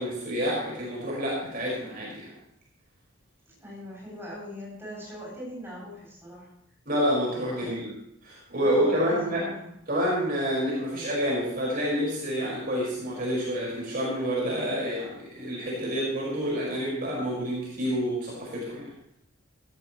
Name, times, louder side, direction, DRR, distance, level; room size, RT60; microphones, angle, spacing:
voice 1, 0.0-2.3 6.9-7.9 8.2-9.4 9.9-18.9, equal, 45° right, -4 dB, 5.4 m, -28 dB
voice 2, 3.6-6.5 7.6-7.8 8.6-9.7, equal, 10° right, -6 dB, 7.3 m, -41 dB
17.5 x 14.0 x 3.2 m, 0.74 s
head